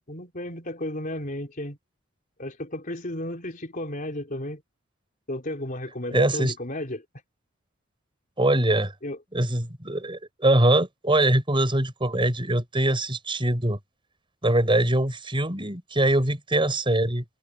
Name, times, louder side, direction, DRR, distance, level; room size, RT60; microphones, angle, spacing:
voice 1, 0.0-1.8 2.4-4.6 5.3-7.0 9.0-9.2, left 1 dB, 40° left, 3.8 m, -33 dB
voice 2, 6.1-6.5 8.4-8.9 9.3-13.8 14.4-17.2, right 1 dB, 25° right, 6.9 m, -23 dB
head